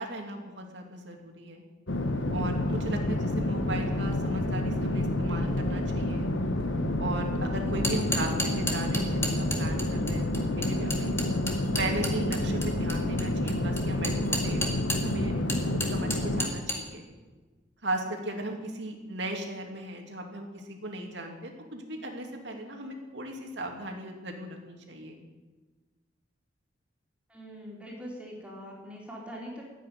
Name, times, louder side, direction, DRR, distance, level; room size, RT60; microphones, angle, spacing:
voice 1, 0.0-1.6 2.3-6.3 7.0-11.1 11.8-14.6 15.0-17.1 17.8-25.2, right 1 dB, 65° right, 2 dB, 2.7 m, -37 dB
sound 1, 1.9-16.5, left 1 dB, 80° left, 1.3 m, -29 dB
sound 2, 7.7-15.1 15.5-16.8, left 1 dB, 15° left, 2.0 m, -32 dB
voice 2, 27.3-29.6, equal, 5° right, -3 dB, 3.9 m, -42 dB
14.5 x 9.2 x 9.9 m, 1.3 s
head